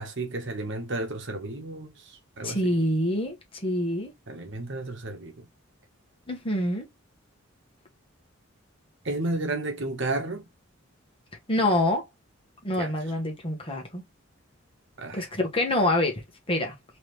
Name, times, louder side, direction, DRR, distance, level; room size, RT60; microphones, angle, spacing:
voice 1, 0.0-2.9 4.3-5.5 9.0-10.5 12.8-12.9 15.0-15.3, right 2 dB, 60° right, 1.2 m, -32 dB
voice 2, 2.4-4.1 6.3-6.9 11.5-12.1 12.6-14.0 15.1-16.2 16.5-16.7, left 1 dB, 25° left, 1.3 m, -26 dB
3.7 x 3.2 x 3.1 m
head